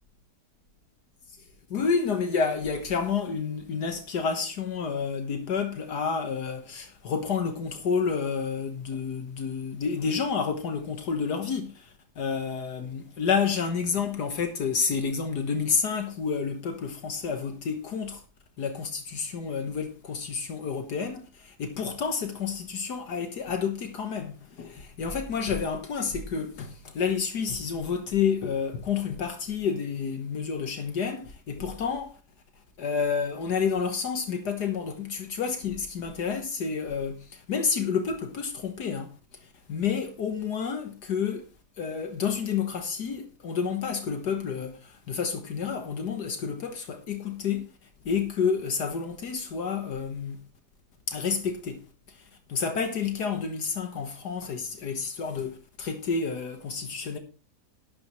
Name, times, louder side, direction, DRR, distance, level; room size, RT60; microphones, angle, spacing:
voice 1, 1.7-18.2 18.6-32.2 32.8-41.5 41.8-47.7 48.0-50.4 51.1-51.8 52.1-57.2, left 6 dB, 75° left, 1.8 m, -30 dB
12.0 x 10.5 x 3.1 m
omnidirectional pair, 1.8 m